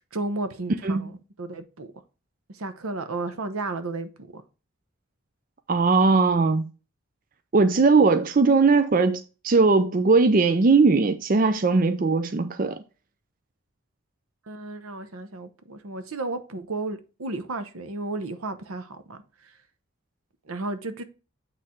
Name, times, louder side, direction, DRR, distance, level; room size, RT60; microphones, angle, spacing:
voice 1, 0.1-1.9 2.6-4.4 14.5-19.2 20.5-21.0, right 2 dB, 85° right, 0.9 m, -33 dB
voice 2, 5.7-6.6 7.5-12.8, right 4 dB, 40° right, 0.4 m, -19 dB
8.5 x 3.3 x 4.3 m
head